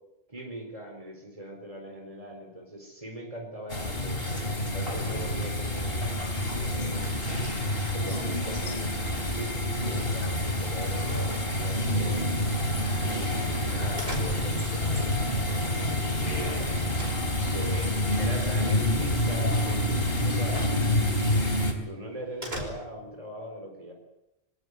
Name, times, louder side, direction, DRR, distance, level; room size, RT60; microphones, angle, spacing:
voice 1, 0.3-4.4 4.7-6.4 6.7-7.3 7.9-11.1 11.9-12.5 13.1-16.7 17.5-19.9 20.2-21.6 21.9-23.9, equal, 35° right, 2 dB, 4.4 m, -40 dB
sound 1, 3.7-21.7, left 1 dB, 65° left, 4.0 m, -28 dB
sound 2, 7.0-18.9 19.1-19.7 20.0-20.2 20.6-20.7 21.1-21.2 21.6-23.3, right 1 dB, 70° right, 5.7 m, -44 dB
25.0 x 18.5 x 8.4 m, 0.91 s
omnidirectional pair, 1.1 m